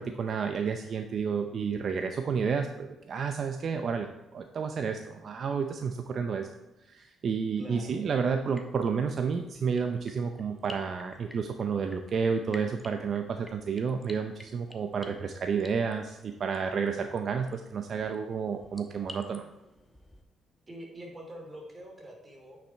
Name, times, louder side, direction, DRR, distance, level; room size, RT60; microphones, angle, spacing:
voice 1, 0.0-6.5 6.9-19.4, right 6 dB, 55° right, 6 dB, 0.6 m, -31 dB
voice 2, 7.6-8.0 20.7-22.6, right 1 dB, 25° right, 1 dB, 2.8 m, -45 dB
sound 1, 8.4-20.2, left 1 dB, 5° left, 1.1 m, -52 dB
8.8 x 5.9 x 4.5 m, 1.0 s
cardioid pair, 90°, 0 cm